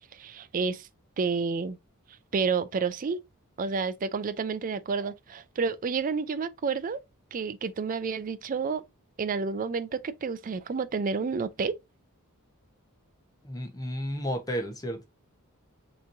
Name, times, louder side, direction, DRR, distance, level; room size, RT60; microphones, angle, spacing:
voice 1, 0.1-0.9 1.2-1.8 2.3-3.2 3.6-7.0 7.3-8.8 9.2-11.7, right 5 dB, 40° right, 0.4 m, -30 dB
voice 2, 13.4-15.1, equal, 15° left, 0.9 m, -32 dB
5.8 x 3.0 x 2.6 m
head